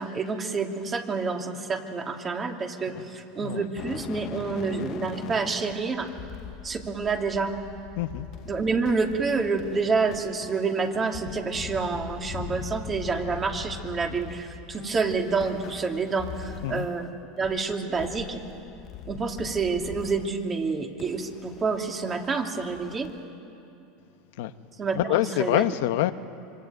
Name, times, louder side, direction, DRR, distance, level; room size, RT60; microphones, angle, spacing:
voice 1, 0.0-6.1 6.6-7.5 8.4-17.1 17.4-18.4 19.1-23.1 24.8-25.6, right 4 dB, 30° right, 2.9 m, -28 dB
sound 1, 3.8-17.1 17.4-20.4 21.0-23.2, left 11 dB, 50° left, 1.1 m, -41 dB
voice 2, 8.0-8.3 16.6-16.9 24.4-24.5 25.0-26.1, left 15 dB, 75° left, 1.0 m, -25 dB
25.0 x 25.0 x 9.4 m
supercardioid pair, 110°, 0 cm